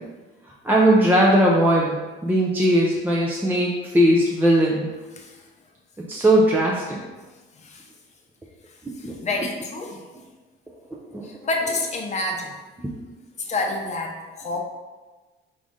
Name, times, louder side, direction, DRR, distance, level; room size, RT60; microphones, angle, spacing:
voice 1, 0.6-1.9 2.2-4.9 6.1-7.0 9.0-9.1 10.9-11.3 12.8-12.9, right 1 dB, 10° right, -4 dB, 0.5 m, -19 dB
voice 2, 5.1-5.5 7.5-7.9 8.7-10.0 11.2-12.6 13.4-14.6, left 2 dB, 35° left, 1 dB, 0.7 m, -29 dB
4.9 x 2.6 x 3.6 m, 1.3 s
cardioid pair, 120°, 21 cm